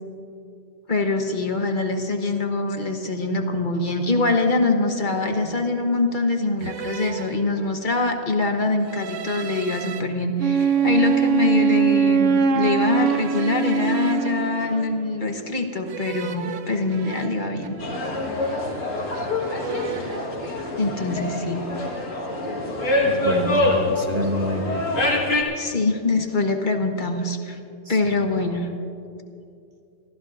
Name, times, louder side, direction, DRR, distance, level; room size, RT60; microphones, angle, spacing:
voice 1, 0.9-17.8 19.1-19.3 20.8-21.7 23.7-23.8 25.5-27.6 27.9-28.7, left 3 dB, 40° left, 4 dB, 1.2 m, -24 dB
sound 1, 4.2-4.4 5.3-5.8 6.6-8.0 8.8-10.0 10.6-12.1 12.9-15.3 15.9-18.1 18.4-19.1 19.4-20.3, right 7 dB, 80° right, 1.1 m, -37 dB
Wind instrument woodwind instrument, 10.4-14.8, right 7 dB, 55° right, 0.7 m, -21 dB
sound 2, 17.8-25.4, left 2 dB, 85° left, 2.1 m, -25 dB
voice 2, 23.0-24.9 27.8-28.0, equal, 35° right, 2 dB, 1.2 m, -27 dB
24.5 x 15.0 x 2.5 m, 2.5 s
omnidirectional pair, 1.3 m